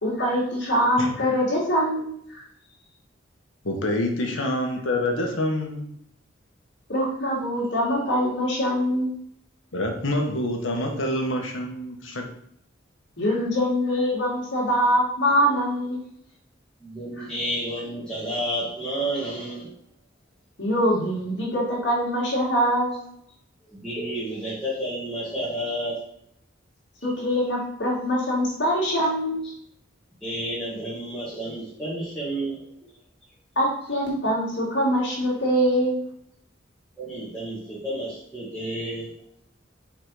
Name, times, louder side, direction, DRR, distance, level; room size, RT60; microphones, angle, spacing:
voice 1, 0.0-2.4 4.4-4.5 6.9-9.2 13.2-16.0 17.2-17.3 20.6-23.0 27.0-29.4 33.6-36.0, equal, 60° left, -4 dB, 2.6 m, -24 dB
voice 2, 3.6-5.9 9.7-12.3, left 1 dB, 80° left, 2 dB, 1.4 m, -26 dB
voice 3, 16.8-19.7 23.7-26.0 27.0-27.1 30.2-32.6 37.0-39.1, right 1 dB, 5° left, -12 dB, 2.1 m, -31 dB
5.9 x 4.4 x 4.9 m, 0.70 s
head